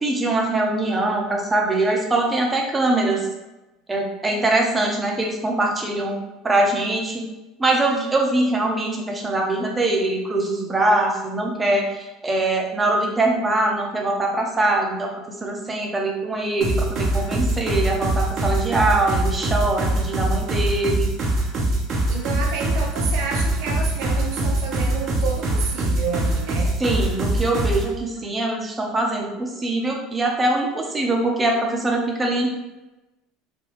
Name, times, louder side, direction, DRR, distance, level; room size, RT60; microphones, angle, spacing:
voice 1, 0.0-3.3 3.9-6.2 6.4-7.2 7.6-15.1 15.4-21.1 26.8-32.6, right 2 dB, 20° right, 0 dB, 0.7 m, -22 dB
sound 1, 16.6-27.9, right 1 dB, 50° right, 0.8 m, -23 dB
voice 2, 22.1-26.8, right 5 dB, 70° right, 1 dB, 0.4 m, -30 dB
3.4 x 2.2 x 3.0 m, 1.0 s
hypercardioid pair, 75°, 0 cm